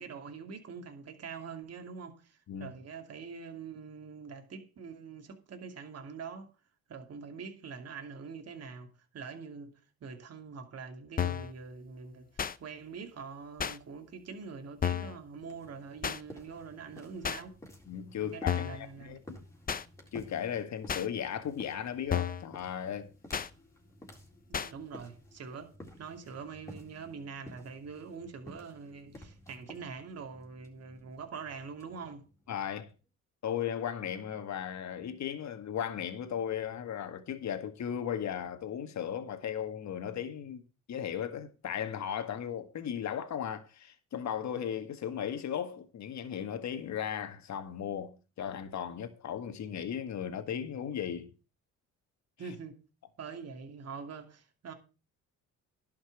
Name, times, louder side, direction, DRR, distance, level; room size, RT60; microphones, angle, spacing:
voice 1, 0.0-6.5 6.9-17.6 18.2-19.2 24.5-32.2 52.4-52.8 53.2-54.7, right 5 dB, 50° right, 2.6 m, -44 dB
sound 1, 11.2-11.5 12.4-12.6 13.6-13.8 14.8-15.2 16.0-16.2 17.2-17.4 18.5-18.8 19.7-19.8 20.9-21.1 22.1-22.5 23.3-23.5 24.5-24.7, left 8 dB, 25° left, 0.7 m, -32 dB
sound 2, 15.4-32.9, left 1 dB, 10° left, 3.9 m, -54 dB
voice 2, 17.9-19.4 20.1-23.1 32.5-32.9 33.4-40.6 40.9-51.3, left 9 dB, 55° left, 1.9 m, -36 dB
11.5 x 5.9 x 7.1 m
cardioid pair, 90°, 32 cm